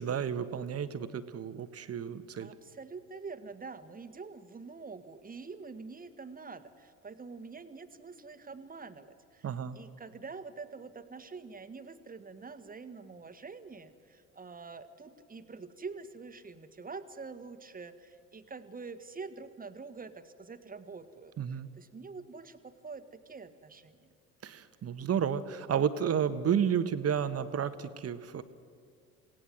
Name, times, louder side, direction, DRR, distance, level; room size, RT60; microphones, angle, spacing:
voice 1, 0.0-2.5 9.4-9.8 21.4-21.7 24.4-28.4, right 8 dB, 35° right, 11 dB, 1.4 m, -31 dB
voice 2, 2.4-9.5 9.8-24.1, right 4 dB, 20° right, 10 dB, 1.7 m, -46 dB
27.5 x 17.5 x 7.9 m, 2.2 s
hypercardioid pair, 70°, 42 cm